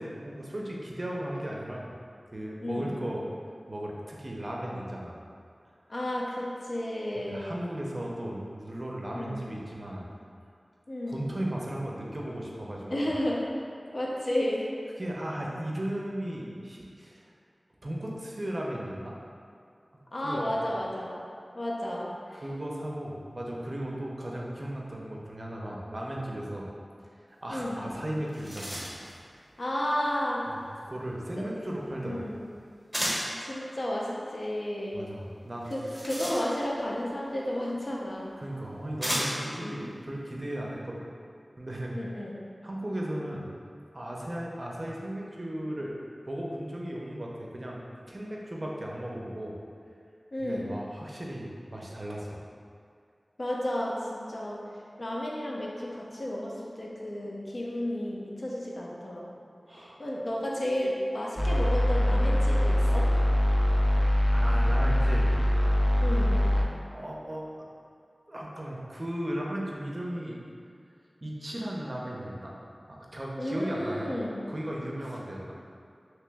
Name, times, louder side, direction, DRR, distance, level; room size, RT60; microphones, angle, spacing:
voice 1, 0.0-1.9 2.3-3.3 3.7-5.2 7.3-10.1 11.1-13.1 15.0-17.3 17.8-19.2 20.2-20.7 22.3-26.7 27.4-28.9 30.5-32.3 34.9-36.0 38.4-41.1 41.6-41.9 42.6-43.5 43.9-45.9 46.3-47.8 48.1-49.6 50.4-52.5 59.7-60.0 64.3-65.3 65.8-65.9 66.9-67.7 68.3-70.4 71.2-72.5 72.9-74.1 74.5-75.5, right 1 dB, 40° right, -3 dB, 0.6 m, -36 dB
voice 2, 2.6-3.0 5.9-7.5 9.1-9.5 10.9-11.2 12.9-13.6 13.9-14.6 20.1-21.2 21.5-22.4 27.5-27.8 29.6-30.4 31.4-31.5 32.0-32.4 33.1-35.1 35.7-38.4 39.5-39.8 41.9-42.3 50.3-50.7 53.4-54.6 55.0-59.2 59.7-63.1 66.0-66.5 73.4-74.3, left 1 dB, 60° left, -4 dB, 0.6 m, -32 dB
sound 1, 27.8-27.9 28.2-29.2 32.9-33.4 35.6-36.8 37.9-38.0 39.0-39.6, equal, 10° right, 0.8 m, -33 dB
sound 2, 61.4-66.6, left 1 dB, 10° left, 0.4 m, -23 dB
2.9 x 2.9 x 3.4 m, 2.3 s
wide cardioid pair, 70°, 0 cm